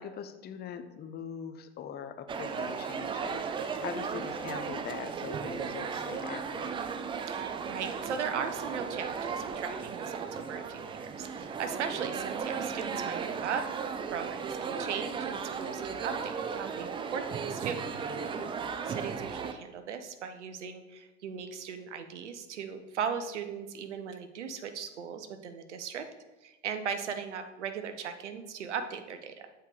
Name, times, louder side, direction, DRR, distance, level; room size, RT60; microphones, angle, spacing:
voice 1, 0.0-6.8 18.2-18.5, left 8 dB, 30° left, 9 dB, 0.7 m, -42 dB
sound 1, 2.3-19.5, right 6 dB, 15° right, 0.4 m, -36 dB
voice 2, 7.3-17.8 18.8-26.1 26.4-29.5, right 7 dB, 80° right, 9 dB, 0.9 m, -38 dB
7.4 x 4.5 x 4.8 m, 1.1 s
hypercardioid pair, 95°, 35 cm